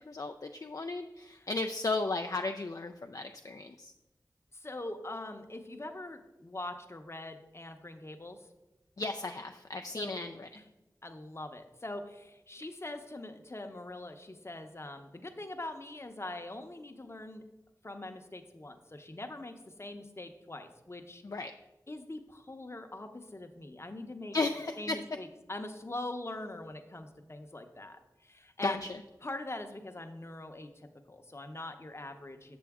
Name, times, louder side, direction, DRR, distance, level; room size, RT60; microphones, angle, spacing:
voice 1, 0.1-3.9 9.0-10.3 21.2-21.5 24.3-25.0 28.6-28.9, left 3 dB, 55° left, 5 dB, 0.4 m, -34 dB
voice 2, 4.5-8.5 9.9-10.2 10.5-10.6 11.0-17.4 17.8-21.2 21.9-24.4 24.8-28.9 29.2-32.6, left 2 dB, 40° left, 6 dB, 0.8 m, -43 dB
7.4 x 7.0 x 3.6 m, 0.98 s
wide cardioid pair, 55°, 7 cm